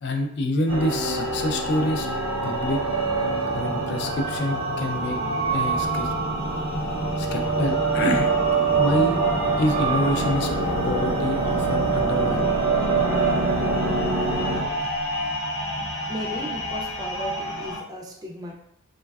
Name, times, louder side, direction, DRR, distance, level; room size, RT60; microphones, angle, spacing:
voice 1, 0.0-2.1 2.4-2.8 3.5-6.1 7.2-8.3 8.7-9.2 9.6-10.5 10.8-12.6, left 1 dB, 55° left, 4 dB, 0.3 m, -26 dB
sound 1, 0.7-17.8, left 1 dB, 75° left, 0.9 m, -31 dB
sound 2, 0.7-14.6, right 4 dB, 70° right, 0.6 m, -25 dB
voice 2, 16.1-18.6, equal, 20° right, -1 dB, 0.4 m, -35 dB
3.2 x 2.1 x 2.3 m, 0.73 s
head